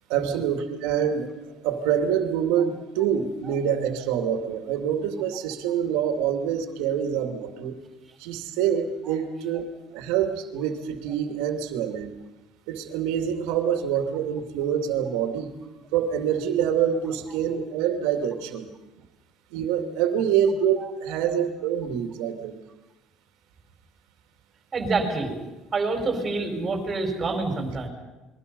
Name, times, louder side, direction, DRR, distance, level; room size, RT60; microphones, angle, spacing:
voice 1, 0.1-1.3 1.6-7.8 8.2-9.7 9.9-12.1 12.7-15.5 15.9-18.7 19.5-22.6, right 8 dB, 85° right, 4 dB, 2.5 m, -26 dB
voice 2, 20.8-21.2 24.7-25.3 25.7-27.9, right 3 dB, 20° right, 4 dB, 4.7 m, -27 dB
29.5 x 22.0 x 5.5 m, 1.1 s
cardioid pair, 160°, 0 cm